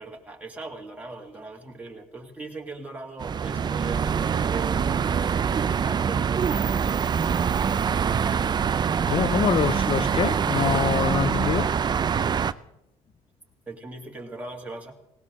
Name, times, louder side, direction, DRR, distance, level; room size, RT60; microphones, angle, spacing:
voice 1, 0.0-5.0 5.8-7.1 13.7-14.9, right 3 dB, 10° right, 2.3 m, -39 dB
sound 1, 3.2-12.5, right 7 dB, 30° right, 0.5 m, -24 dB
voice 2, 9.1-11.8, left 8 dB, 40° left, 0.6 m, -25 dB
19.0 x 18.0 x 3.7 m
cardioid pair, 115°, 13 cm